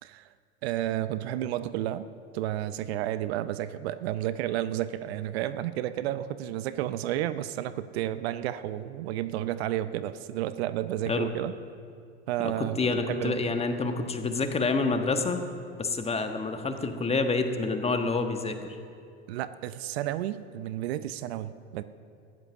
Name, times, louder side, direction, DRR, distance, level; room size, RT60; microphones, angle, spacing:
voice 1, 0.0-0.3 0.6-2.1 2.3-11.5 12.3-13.4 19.3-21.8, right 13 dB, 65° right, 14 dB, 0.7 m, -31 dB
voice 2, 12.4-15.4 15.8-18.8, left 3 dB, 20° left, 6 dB, 1.4 m, -28 dB
15.0 x 11.0 x 6.1 m, 2.4 s
hypercardioid pair, 85°, 33 cm